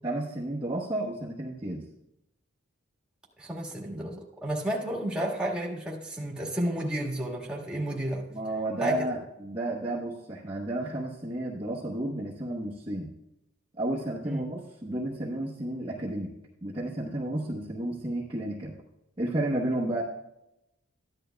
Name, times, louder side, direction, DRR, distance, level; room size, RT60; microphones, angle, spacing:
voice 1, 0.0-1.8 8.3-13.1 13.8-16.3 16.6-18.8 19.2-20.0, right 1 dB, 20° right, -6 dB, 0.9 m, -32 dB
voice 2, 3.4-8.3 8.8-8.9 14.2-14.4, right 1 dB, 5° right, -3 dB, 1.6 m, -31 dB
14.0 x 10.5 x 2.3 m, 0.86 s
head